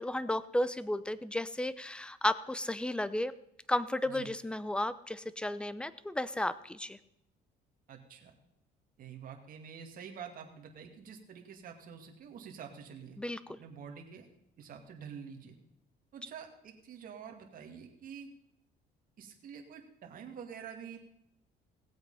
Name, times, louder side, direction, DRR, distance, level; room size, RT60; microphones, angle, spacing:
voice 1, 0.0-3.3 3.7-7.0 13.2-13.6, left 1 dB, 5° left, 16 dB, 0.6 m, -33 dB
voice 2, 7.9-8.4 9.0-13.2 13.6-14.3 14.6-15.6 16.1-18.3 19.2-21.0, right 7 dB, 55° right, 3 dB, 2.2 m, -47 dB
17.5 x 7.9 x 5.6 m, 0.78 s
cardioid pair, 110°, 17 cm